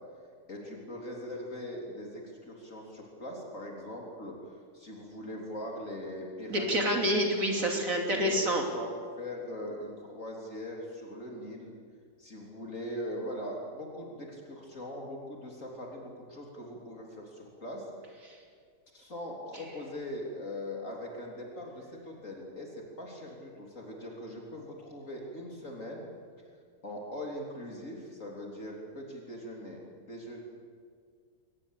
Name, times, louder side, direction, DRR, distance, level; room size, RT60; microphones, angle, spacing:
voice 1, 0.5-4.3 4.7-6.9 7.8-8.3 8.7-11.8 12.2-18.3 18.9-26.1 26.8-30.4, left 1 dB, 50° left, -1 dB, 3.9 m, -41 dB
voice 2, 6.5-8.7 18.3-18.4, equal, 55° right, 2 dB, 3.5 m, -28 dB
23.0 x 20.5 x 8.4 m, 2.1 s
omnidirectional pair, 1.7 m